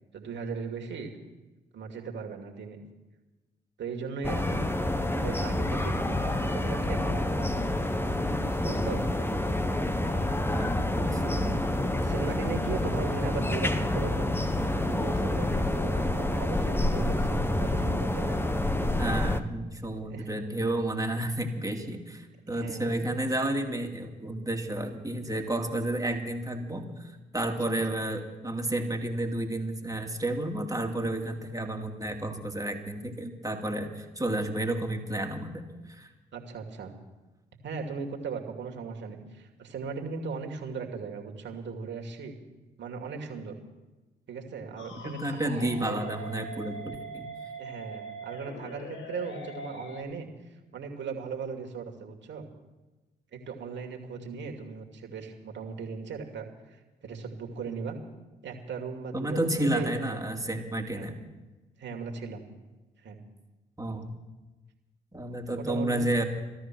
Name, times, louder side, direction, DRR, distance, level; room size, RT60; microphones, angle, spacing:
voice 1, 0.1-1.2 1.7-2.8 3.8-7.7 8.4-9.0 11.4-14.3 14.8-18.4 20.1-20.3 22.5-23.0 27.6-27.8 36.3-37.0 37.6-42.3 42.8-43.6 44.3-45.5 45.8-46.0 47.6-52.5 53.3-58.0 58.4-60.2 60.9-61.2 61.8-62.5 63.0-63.2 65.5-66.0, right 5 dB, 60° right, 2 dB, 2.5 m, -38 dB
sound 1, 4.2-19.4, left 1 dB, 10° left, 1.3 m, -28 dB
voice 2, 10.5-11.6 19.0-35.6 35.9-36.1 45.0-47.3 59.1-61.1 63.8-64.1 65.1-66.2, right 1 dB, 15° right, 3 dB, 2.6 m, -31 dB
sound 2, 44.8-50.0, right 2 dB, 65° left, 2.3 m, -42 dB
16.0 x 13.0 x 6.2 m, 1.1 s
hypercardioid pair, 45°, 21 cm